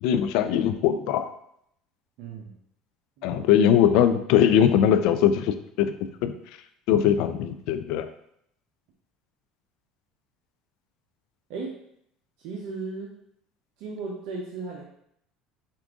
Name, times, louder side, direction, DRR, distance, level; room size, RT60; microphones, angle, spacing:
voice 1, 0.0-1.3 3.2-5.9 6.2-6.3 6.9-8.1, left 9 dB, 70° left, 10 dB, 0.3 m, -21 dB
voice 2, 2.2-2.5 3.2-3.4 11.5-11.8 12.4-13.1 13.8-14.8, right 4 dB, 70° right, -2 dB, 0.7 m, -35 dB
4.6 x 2.5 x 3.6 m, 0.73 s
supercardioid pair, 115°, 0 cm